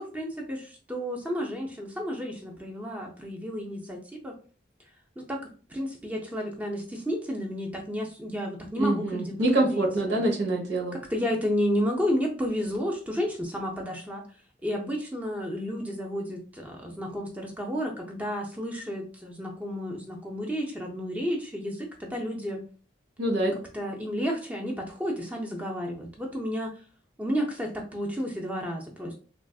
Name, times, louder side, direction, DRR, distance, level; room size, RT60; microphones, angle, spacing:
voice 1, 0.0-4.3 5.2-10.2 11.1-14.2 14.6-22.6 23.7-26.8 27.2-29.1, equal, 10° right, 0 dB, 0.4 m, -32 dB
voice 2, 8.8-11.0 23.2-23.5, right 1 dB, 85° right, -1 dB, 1.0 m, -25 dB
3.3 x 2.4 x 2.3 m, 0.39 s
head